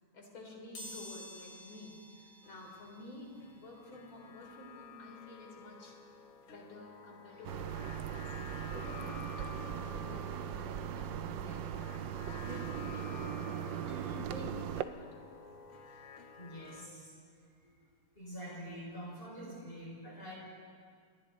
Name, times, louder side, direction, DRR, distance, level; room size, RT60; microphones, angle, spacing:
voice 1, 0.1-6.0 6.5-11.7 12.2-13.9 14.3-14.5 14.8-15.1, left 1 dB, 65° left, 0 dB, 4.4 m, -50 dB
sound 1, 0.7-11.4 11.9-12.0 13.1-13.2 13.5-15.6 16.0-18.6 18.9-19.1 19.4-19.5, left 1 dB, 50° left, 4.4 m, -56 dB
sound 2, 2.4-16.9, left 5 dB, 85° left, 2.1 m, -52 dB
sound 3, 7.4-14.8, right 10 dB, 70° right, 1.2 m, -39 dB
voice 2, 13.9-14.2 15.0-15.1 15.9-16.0 16.4-17.1 17.6-17.7 18.1-20.3, equal, 25° left, -5 dB, 5.8 m, -46 dB
29.0 x 22.0 x 4.1 m, 2.1 s
omnidirectional pair, 2.4 m